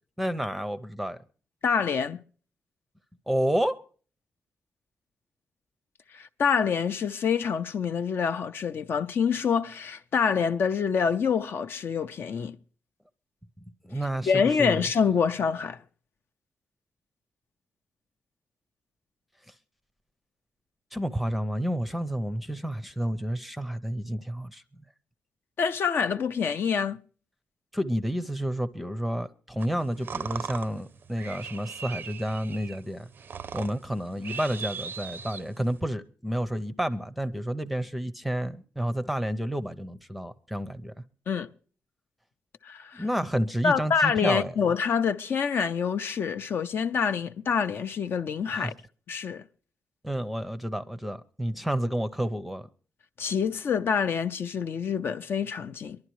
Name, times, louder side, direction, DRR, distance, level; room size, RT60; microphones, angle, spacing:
voice 1, 0.2-1.2 3.3-3.8 13.8-14.9 20.9-24.6 27.7-33.1 33.5-40.9 42.9-44.5 48.5-48.7 50.0-52.7, equal, ahead, 0.6 m, -30 dB
voice 2, 1.6-2.2 6.1-12.6 14.3-15.8 25.6-27.0 41.3-41.5 42.6-43.0 43.6-48.7 49.1-49.4 53.2-56.0, left 6 dB, 55° left, 0.6 m, -26 dB
sound 1, 29.6-35.8, right 6 dB, 50° right, 0.5 m, -39 dB
24.0 x 11.5 x 3.1 m
wide cardioid pair, 145°, 5 cm